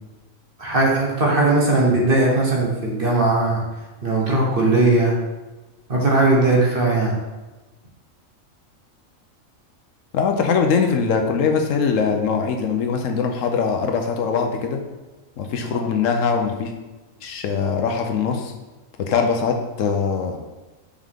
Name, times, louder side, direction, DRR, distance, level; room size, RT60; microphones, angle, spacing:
voice 1, 0.6-3.6 4.0-5.2 5.9-7.2 15.8-15.9, right 2 dB, 45° right, -3 dB, 1.3 m, -18 dB
voice 2, 10.1-14.8 15.4-16.7 17.2-18.5 19.0-20.4, left 5 dB, 70° left, 4 dB, 1.0 m, -22 dB
5.7 x 4.8 x 3.6 m, 1.2 s
omnidirectional pair, 1.4 m